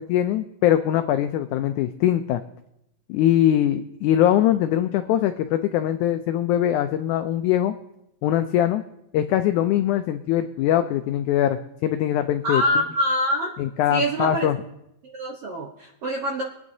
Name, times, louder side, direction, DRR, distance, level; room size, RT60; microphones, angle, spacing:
voice 1, 0.0-2.4 3.1-7.7 8.2-8.8 9.1-12.6 13.6-14.6, left 11 dB, 90° left, 9 dB, 1.7 m, -22 dB
voice 2, 12.4-13.5 13.9-14.5 15.0-16.4, equal, 70° right, -1 dB, 1.4 m, -25 dB
22.0 x 9.6 x 2.7 m, 0.83 s
omnidirectional pair, 4.0 m